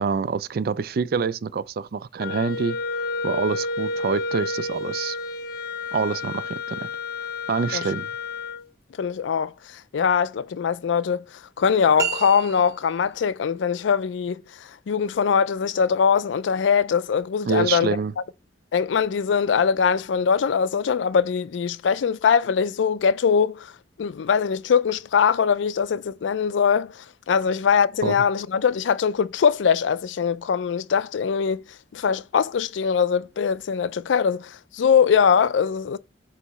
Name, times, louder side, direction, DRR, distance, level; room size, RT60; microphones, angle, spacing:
voice 1, 0.0-5.2 5.9-6.9 7.5-8.1 17.4-18.1 28.0-28.2, right 5 dB, 55° right, 0.3 m, -26 dB
Wind instrument woodwind instrument, 2.2-8.7, left 3 dB, 55° left, 0.7 m, -30 dB
voice 2, 9.0-9.5 9.9-11.2 11.6-14.4 14.9-17.9 18.7-23.7 24.0-26.9 27.3-31.6 31.9-36.0, left 6 dB, 85° left, 0.4 m, -22 dB
sound 1, 12.0-13.1, right 7 dB, 15° right, 0.8 m, -30 dB
8.1 x 3.0 x 4.1 m
head